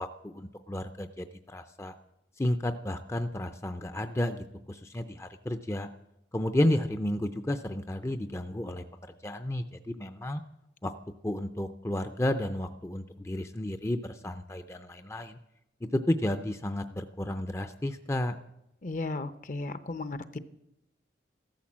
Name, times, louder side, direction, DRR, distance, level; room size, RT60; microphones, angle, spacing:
voice 1, 0.0-1.9 2.4-5.9 6.3-8.8 9.2-10.4 10.8-10.9 11.2-15.4 15.9-18.3, left 1 dB, 15° left, 8 dB, 0.5 m, -32 dB
voice 2, 18.8-20.4, left 2 dB, 45° left, 13 dB, 0.8 m, -35 dB
14.5 x 13.0 x 7.4 m, 0.84 s
head